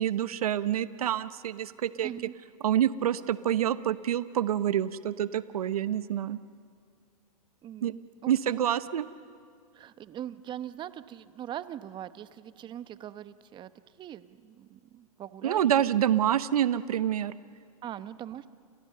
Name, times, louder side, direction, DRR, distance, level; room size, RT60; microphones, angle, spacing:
voice 1, 0.0-2.1 2.6-6.4 7.8-7.9 8.3-9.1 15.4-17.3, right 10 dB, 75° right, 15 dB, 0.9 m, -27 dB
voice 2, 2.0-2.3 7.6-8.6 9.7-13.7 14.0-15.6 17.8-18.5, right 11 dB, 25° right, 14 dB, 1.0 m, -41 dB
29.5 x 29.5 x 6.8 m, 2.2 s
hypercardioid pair, 125°, 19 cm